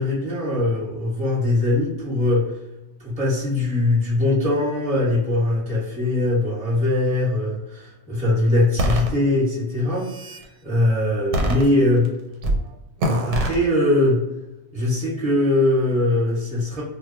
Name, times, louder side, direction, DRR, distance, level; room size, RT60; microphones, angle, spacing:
voice 1, 0.0-2.5 3.0-10.1 10.6-12.1 13.0-14.3 14.7-16.8, left 2 dB, 5° left, -8 dB, 0.8 m, -21 dB
sound 1, 8.8-9.1 9.8-10.4 11.3-12.1 12.4-12.6 13.0-13.6, right 1 dB, 90° right, 0.9 m, -23 dB
2.2 x 2.2 x 3.5 m, 0.98 s
omnidirectional pair, 1.2 m